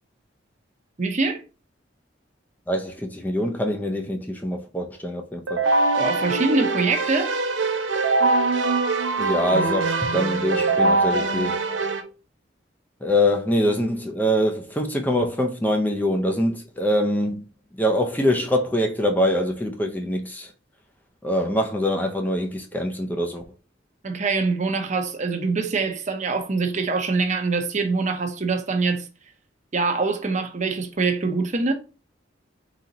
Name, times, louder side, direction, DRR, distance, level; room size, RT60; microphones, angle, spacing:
voice 1, 1.0-1.4 6.0-7.3 24.0-29.1 29.7-31.7, right 4 dB, 40° right, 0.8 m, -24 dB
voice 2, 2.7-5.6 9.2-11.6 13.0-17.4 17.7-20.5 21.2-23.4, equal, 10° left, 0.5 m, -24 dB
Keyboard (musical), 5.5-12.0, right 3 dB, 85° right, 0.8 m, -22 dB
4.2 x 4.0 x 2.9 m
head